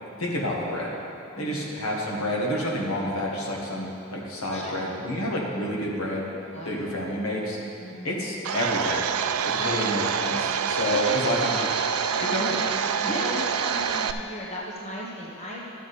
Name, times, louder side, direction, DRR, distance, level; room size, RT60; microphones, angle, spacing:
voice 1, 0.2-0.9 1.4-6.3 6.6-7.6 8.0-9.0 9.4-11.5 12.3-12.6, equal, 70° left, -3 dB, 1.6 m, -29 dB
voice 2, 1.3-1.7 4.5-4.9 6.5-6.9 7.8-8.3 9.6-9.8 10.9-11.7 12.1-12.7 13.0-15.6, left 1 dB, 30° left, -4 dB, 1.2 m, -36 dB
Domestic sounds home sounds, 8.4-14.1, right 7 dB, 75° right, 0.4 m, -26 dB
13.0 x 7.3 x 4.2 m, 2.9 s
head